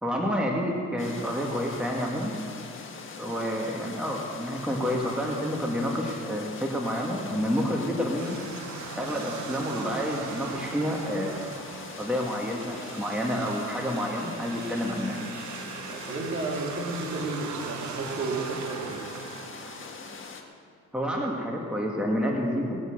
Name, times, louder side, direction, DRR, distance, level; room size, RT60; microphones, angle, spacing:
voice 1, 0.0-2.3 3.2-8.4 8.9-11.4 12.0-15.2 20.9-22.8, equal, 5° right, -1 dB, 1.8 m, -29 dB
sound 1, 1.0-20.4, left 5 dB, 40° left, 1.5 m, -42 dB
sound 2, 8.2-20.3, right 8 dB, 70° right, 0.8 m, -40 dB
voice 2, 15.9-19.1, right 2 dB, 40° right, -1 dB, 2.9 m, -32 dB
19.0 x 8.1 x 6.4 m, 2.3 s
cardioid pair, 90°, 30 cm